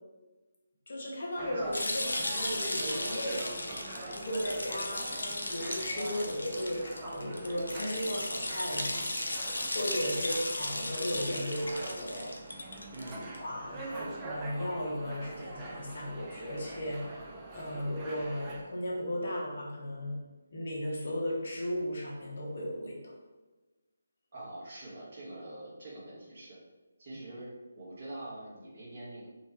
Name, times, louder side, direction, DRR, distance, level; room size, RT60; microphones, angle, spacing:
voice 1, 0.9-3.6 4.1-9.1 9.6-12.7 13.4-20.2 20.5-23.1, equal, 55° left, -2 dB, 0.8 m, -36 dB
sound 1, 1.4-18.6, right 2 dB, 20° right, 0.3 m, -44 dB
sound 2, 1.7-13.4, left 1 dB, 70° left, 0.4 m, -36 dB
voice 2, 12.9-13.4 24.3-26.6 27.0-27.5 27.8-29.3, right 1 dB, 45° right, -6 dB, 1.0 m, -44 dB
2.8 x 2.1 x 2.9 m, 1.2 s
figure-of-eight pair, 150°, 0 cm